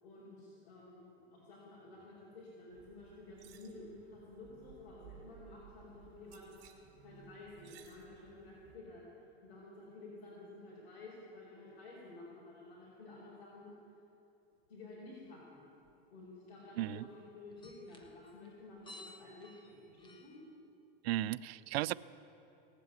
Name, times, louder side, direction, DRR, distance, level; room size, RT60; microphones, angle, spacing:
voice 1, 0.0-6.5 7.0-9.0 9.4-13.7 14.7-15.7 16.1-20.3, left 2 dB, 70° left, -6 dB, 4.4 m, -52 dB
sound 1, 2.7-8.8, right 8 dB, 50° right, 1.9 m, -59 dB
sound 2, 14.6-14.7 15.3-15.4 15.8-15.9 17.5-20.4, left 1 dB, 15° left, 1.3 m, -56 dB
voice 2, 21.0-21.9, right 14 dB, 80° right, 18 dB, 0.5 m, -35 dB
18.5 x 7.7 x 9.4 m, 2.8 s
supercardioid pair, 140°, 31 cm